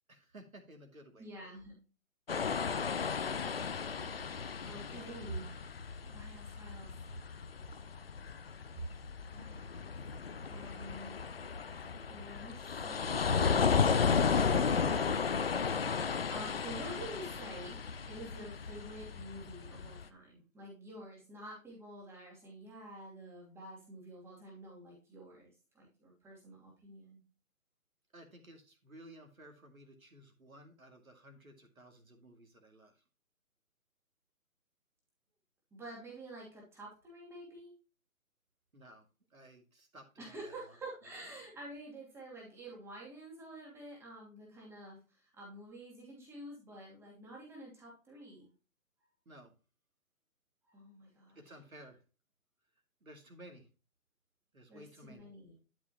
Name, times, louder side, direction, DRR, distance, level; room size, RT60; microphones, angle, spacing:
voice 1, 0.1-1.3 4.7-5.3 28.1-33.0 38.7-39.1 39.3-40.8 49.3-49.5 51.4-52.0 53.0-53.7 54.5-55.3, right 1 dB, 75° right, 5 dB, 2.4 m, -55 dB
voice 2, 1.2-1.8 4.6-5.6 6.1-6.9 9.3-9.9 10.5-11.2 12.1-13.3 14.5-15.0 16.3-17.8 18.1-27.2 35.7-37.7 40.2-48.5 50.6-51.4 54.7-55.5, right 1 dB, 5° right, -3 dB, 2.7 m, -48 dB
sound 1, 2.3-20.0, left 6 dB, 45° left, 0.5 m, -34 dB
12.0 x 5.9 x 2.9 m, 0.33 s
figure-of-eight pair, 140°, 43 cm